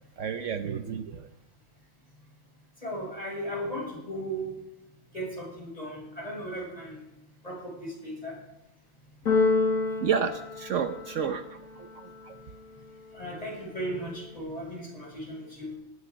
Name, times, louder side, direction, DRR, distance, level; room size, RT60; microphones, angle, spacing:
voice 1, 0.2-1.3 10.0-12.4, right 7 dB, 65° right, 8 dB, 1.2 m, -31 dB
voice 2, 2.8-4.5 5.1-7.0 7.4-8.3 13.1-15.7, right 1 dB, 25° left, -3 dB, 7.2 m, -36 dB
Keyboard (musical), 9.3-11.4, left 4 dB, 75° left, 2.5 m, -27 dB
18.5 x 13.0 x 5.2 m, 0.90 s
omnidirectional pair, 1.4 m